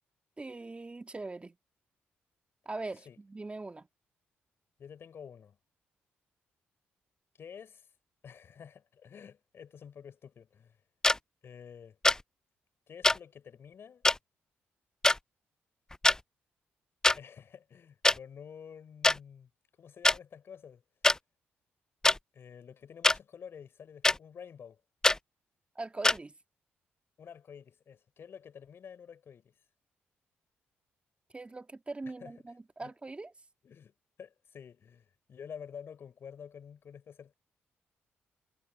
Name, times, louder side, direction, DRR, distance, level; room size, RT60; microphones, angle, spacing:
voice 1, 0.4-1.6 2.7-3.9 25.8-26.3 31.3-33.3, right 3 dB, 25° right, 1.9 m, -41 dB
voice 2, 4.8-5.6 7.4-7.9 8.2-10.8 11.4-12.0 12.9-14.0 17.1-19.5 19.8-20.8 22.3-24.8 27.2-29.5 32.2-32.3 32.8-32.9 33.6-33.9 34.2-37.3, left 7 dB, 60° left, 4.8 m, -49 dB
sound 1, 11.0-11.2 12.0-12.2 13.0-13.2 14.0-14.2 15.0-15.2 15.9-16.2 17.0-17.2 18.0-18.2 19.0-19.2 20.0-20.2 21.0-21.2 22.0-22.2 23.0-23.2 24.0-24.2 25.0-25.2 26.0-26.2, left 2 dB, 15° left, 0.4 m, -23 dB
supercardioid pair, 55°, 5 cm